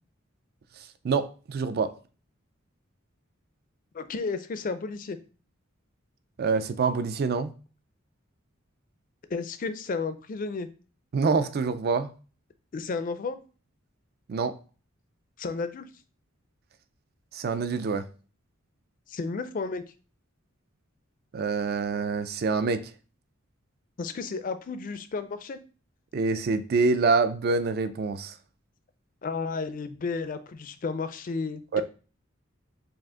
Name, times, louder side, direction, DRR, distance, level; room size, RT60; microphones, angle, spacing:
voice 1, 1.0-1.9 6.4-7.5 11.1-12.1 14.3-14.5 17.3-18.1 21.3-22.8 26.1-28.3 31.7-31.8, right 4 dB, 50° right, 0.4 m, -26 dB
voice 2, 3.9-5.2 9.3-10.7 12.7-13.4 15.4-15.9 19.1-19.8 24.0-25.6 29.2-31.8, left 4 dB, 40° left, 0.4 m, -32 dB
5.0 x 2.4 x 3.5 m
head